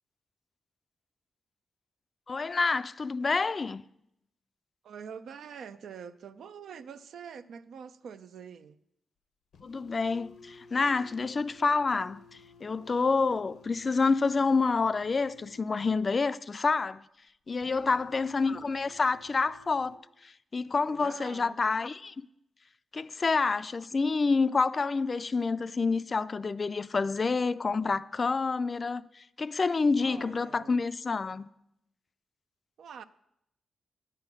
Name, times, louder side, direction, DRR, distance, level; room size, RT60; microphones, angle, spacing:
voice 1, 2.3-3.9 9.6-12.2 12.6-17.0 17.5-20.0 20.2-22.3 22.9-31.5, left 4 dB, 45° left, 0.3 m, -28 dB
voice 2, 4.8-8.8 17.7-18.1 20.9-21.6 30.0-30.8 32.8-33.0, right 7 dB, 80° right, 0.4 m, -45 dB
sound 1, 9.5-16.1 17.6-20.0, left 3 dB, 85° left, 0.7 m, -55 dB
9.7 x 5.7 x 5.9 m
cardioid pair, 55°, 0 cm